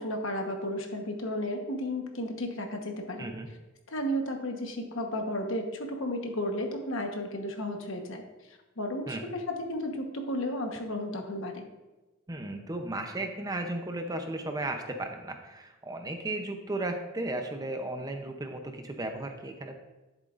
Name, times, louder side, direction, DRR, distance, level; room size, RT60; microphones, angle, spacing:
voice 1, 0.0-3.3 3.9-8.2 8.8-11.7, left 1 dB, 60° left, 4 dB, 1.2 m, -33 dB
voice 2, 12.3-19.8, right 2 dB, 15° right, 5 dB, 0.6 m, -35 dB
11.0 x 7.8 x 2.5 m, 1.1 s
head